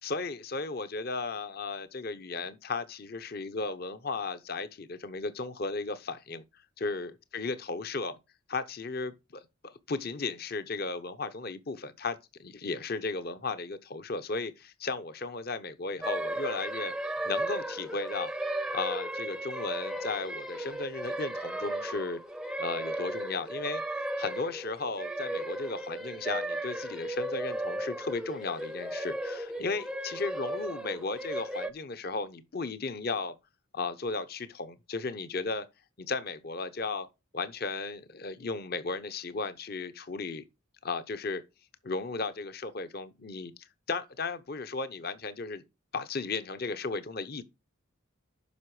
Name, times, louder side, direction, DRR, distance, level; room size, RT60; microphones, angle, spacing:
voice 1, 0.0-6.4 6.8-8.2 8.5-16.9 17.2-18.3 18.7-22.2 22.6-23.8 24.2-33.3 33.7-35.7 36.0-37.1 37.3-40.4 40.8-41.4 41.8-45.6 45.9-47.4, left 3 dB, 50° left, 0.9 m, -35 dB
sound 1, 16.0-31.7, right 1 dB, 5° right, 0.6 m, -35 dB
9.5 x 6.1 x 4.9 m
head